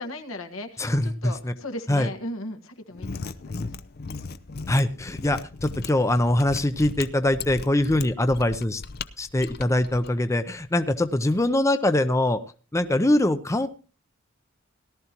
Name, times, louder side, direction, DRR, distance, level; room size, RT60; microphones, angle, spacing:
voice 1, 0.0-3.5, left 1 dB, 80° left, 5 dB, 1.6 m, -37 dB
voice 2, 0.8-1.5 1.9-2.1 4.7-8.8 9.2-12.4 12.7-13.7, left 1 dB, 15° left, 9 dB, 0.6 m, -23 dB
Mechanisms, 2.9-10.1, left 4 dB, 50° left, 0.6 m, -37 dB
18.0 x 12.0 x 3.0 m, 0.34 s
head